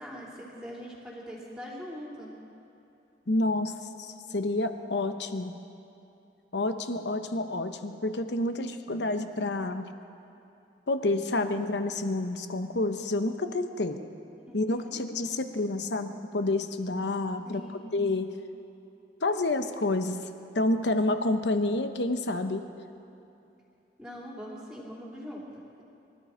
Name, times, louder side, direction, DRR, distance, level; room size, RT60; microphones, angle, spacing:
voice 1, 0.0-2.3 14.5-15.0 17.4-18.0 24.0-25.8, equal, 5° right, -5 dB, 3.1 m, -42 dB
voice 2, 3.3-3.7 4.0-5.6 6.5-9.9 10.9-14.0 14.5-18.3 19.2-20.3 20.5-22.7, left 2 dB, 75° left, 8 dB, 0.9 m, -29 dB
25.0 x 13.0 x 4.4 m, 2.8 s
head